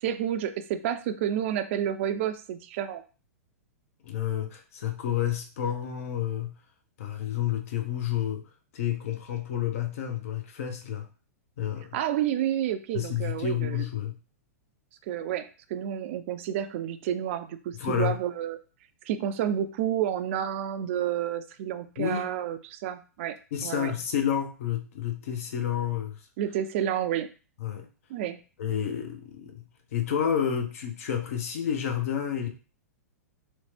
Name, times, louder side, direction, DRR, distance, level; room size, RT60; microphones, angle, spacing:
voice 1, 0.0-3.0 11.9-13.9 15.1-18.6 19.0-23.4 23.6-23.9 26.4-27.3 28.1-28.4, right 10 dB, 50° right, 11 dB, 0.4 m, -30 dB
voice 2, 4.0-6.6 7.0-8.5 8.7-11.1 11.6-12.0 12.9-14.2 17.7-18.2 22.0-22.3 23.5-26.2 27.6-27.9 28.6-29.6 29.9-32.5, left 9 dB, 60° left, 5 dB, 0.6 m, -30 dB
3.0 x 2.0 x 3.2 m, 0.35 s
hypercardioid pair, 115°, 9 cm